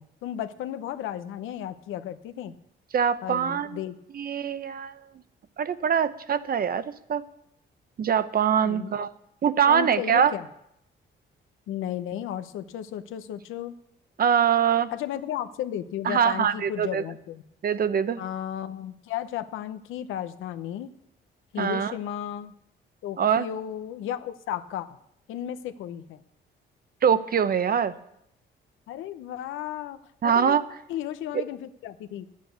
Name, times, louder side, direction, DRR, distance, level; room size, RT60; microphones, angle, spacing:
voice 1, 0.0-2.5 3.2-3.9 8.6-8.9 9.7-10.5 11.7-13.7 14.9-17.4 18.2-20.9 21.5-22.5 23.0-25.0 25.3-26.2 28.9-30.6 30.9-32.3, left 11 dB, 90° left, 11 dB, 0.8 m, -34 dB
voice 2, 2.9-3.8 4.1-5.0 5.6-7.2 8.0-9.1 9.4-10.3 14.2-14.9 16.0-17.0 17.6-18.2 21.6-21.9 23.2-23.5 27.0-27.9 30.2-30.6 31.3-31.4, right 8 dB, 50° right, 13 dB, 0.8 m, -23 dB
10.5 x 8.5 x 8.0 m, 0.77 s
cardioid pair, 90°, 20 cm